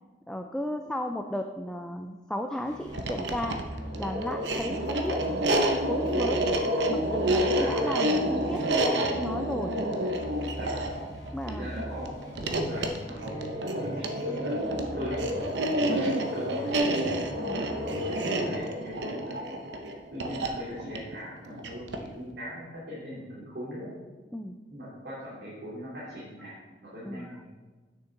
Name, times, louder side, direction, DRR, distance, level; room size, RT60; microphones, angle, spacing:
voice 1, 0.3-3.6 4.0-5.2 5.8-6.4 6.9-9.7 11.3-11.7 15.9-16.1 17.4-17.6 24.3-24.6 27.0-27.3, left 1 dB, 5° left, 4 dB, 0.3 m, -34 dB
sound 1, 2.6-3.1 3.4-18.6, equal, 75° left, 2.7 m, -42 dB
sound 2, 2.9-22.2, right 1 dB, 85° right, 0.8 m, -29 dB
voice 2, 7.4-8.1 8.4-8.6 10.6-10.9 11.4-14.6 14.9-15.2 15.9-16.8 17.5-19.6 20.1-23.9 24.7-26.5 26.9-27.5, equal, 65° right, -9 dB, 2.6 m, -39 dB
8.8 x 6.5 x 3.8 m, 1.3 s
head